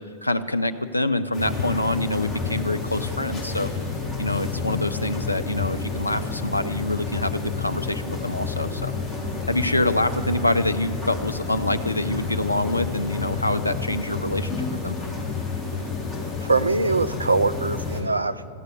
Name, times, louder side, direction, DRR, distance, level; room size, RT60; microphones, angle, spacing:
voice 1, 0.0-3.7 4.2-8.9 9.5-14.9, left 1 dB, 85° left, 10 dB, 0.5 m, -26 dB
sound 1, 1.3-18.0, left 4 dB, ahead, 3.4 m, -30 dB
voice 2, 16.4-18.6, right 3 dB, 80° right, 11 dB, 0.4 m, -23 dB
14.5 x 8.1 x 9.9 m, 2.3 s
figure-of-eight pair, 90°, 0 cm